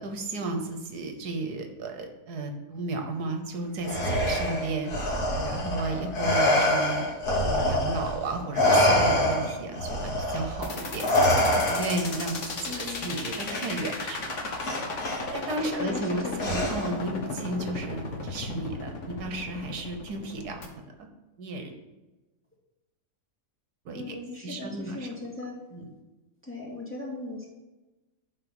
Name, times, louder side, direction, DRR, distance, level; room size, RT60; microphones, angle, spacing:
voice 1, 0.0-4.9 5.3-7.1 7.4-12.4 12.7-14.5 15.3-20.6 21.0-21.1 21.4-21.7 23.8-24.2 24.4-25.1 25.7-25.8, right 2 dB, 75° right, 5 dB, 1.6 m, -33 dB
Respiratory sounds, 3.8-8.2 8.5-12.2 13.4-13.6 14.6-15.2 16.4-17.0, left 1 dB, 80° left, 2.4 m, -25 dB
sound 1, 10.6-20.7, left 3 dB, 55° left, 1.4 m, -35 dB
voice 2, 12.7-13.2 15.7-16.6 23.9-25.6 26.4-27.5, left 3 dB, 10° left, -4 dB, 2.1 m, -38 dB
10.5 x 3.8 x 7.1 m, 1.1 s
omnidirectional pair, 1.7 m